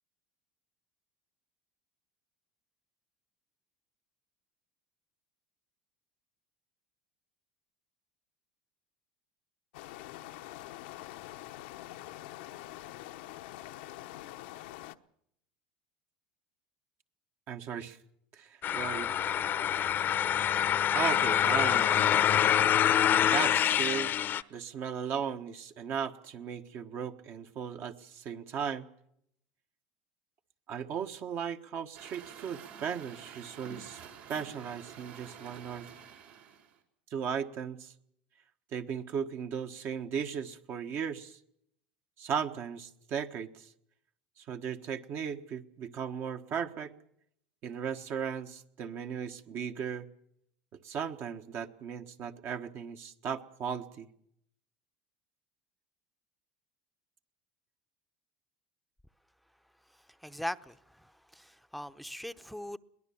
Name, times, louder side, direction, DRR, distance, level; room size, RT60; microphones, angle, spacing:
sound 1, 9.7-14.9, left 15 dB, 75° left, 0.9 m, -45 dB
voice 1, 17.5-18.0 18.3-19.1 20.9-22.1 23.3-24.1 24.5-28.9 30.7-34.0 34.3-35.9 37.1-37.9 38.7-41.4 42.2-43.7 44.4-46.9 47.6-50.1 50.7-54.1, right 7 dB, 50° right, 1.3 m, -36 dB
sound 2, 18.6-24.4, left 10 dB, 40° left, 0.8 m, -26 dB
Truck, 31.9-36.8, right 8 dB, 75° right, 4.4 m, -49 dB
voice 2, 60.2-60.8 61.0-62.8, equal, ahead, 0.8 m, -40 dB
22.0 x 18.0 x 7.2 m
supercardioid pair, 100°, 5 cm